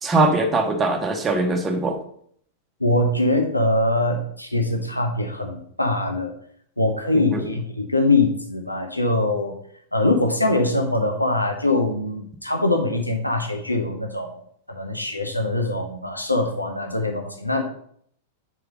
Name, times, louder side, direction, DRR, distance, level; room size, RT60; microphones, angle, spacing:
voice 1, 0.0-2.0 7.1-7.4, right 2 dB, 20° right, 3 dB, 1.0 m, -21 dB
voice 2, 2.8-6.3 6.8-9.5 9.9-14.4 14.7-17.6, left 2 dB, 90° left, 3 dB, 0.9 m, -23 dB
6.0 x 4.6 x 5.2 m, 0.64 s
figure-of-eight pair, 95°, 0 cm